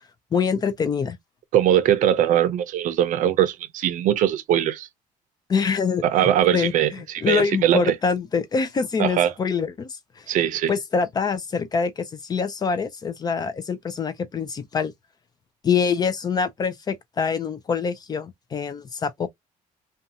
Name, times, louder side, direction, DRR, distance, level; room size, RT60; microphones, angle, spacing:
voice 1, 0.3-1.2 5.5-6.0 6.5-10.3 10.7-14.9 15.6-19.3, left 5 dB, 30° left, 0.4 m, -25 dB
voice 2, 1.5-4.9 6.0-7.9 9.0-9.3 10.3-10.7, right 11 dB, 65° right, 0.6 m, -21 dB
2.6 x 2.2 x 2.7 m
cardioid pair, 135°, 14 cm